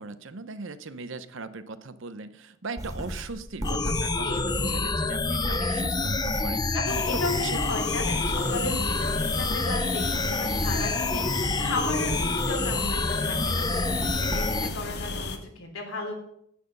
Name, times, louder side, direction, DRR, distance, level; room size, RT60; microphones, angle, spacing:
voice 1, 0.0-6.7 7.1-7.6 8.6-8.8, right 3 dB, 60° right, 13 dB, 0.7 m, -39 dB
sound 1, 2.8-14.8, equal, 15° right, 1.8 m, -37 dB
sound 2, 3.6-14.7, left 3 dB, 20° left, 0.6 m, -27 dB
voice 2, 4.2-4.9 5.5-5.8 6.7-16.1, left 2 dB, 70° left, 2 dB, 3.1 m, -35 dB
sound 3, 6.9-15.4, left 3 dB, 50° left, 1.2 m, -35 dB
10.5 x 9.2 x 5.3 m, 0.74 s
head